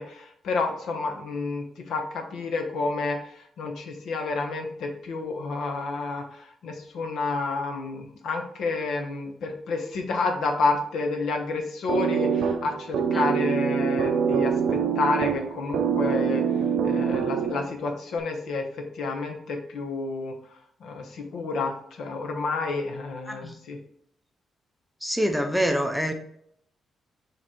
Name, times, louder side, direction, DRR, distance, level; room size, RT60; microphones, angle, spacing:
voice 1, 0.0-23.8, left 3 dB, 75° left, 3 dB, 1.1 m, -30 dB
sound 1, 11.9-17.9, right 7 dB, 75° right, 0.6 m, -25 dB
voice 2, 23.3-23.6 25.0-26.1, equal, ahead, 5 dB, 0.5 m, -25 dB
7.1 x 3.2 x 4.4 m, 0.68 s
cardioid pair, 155°, 0 cm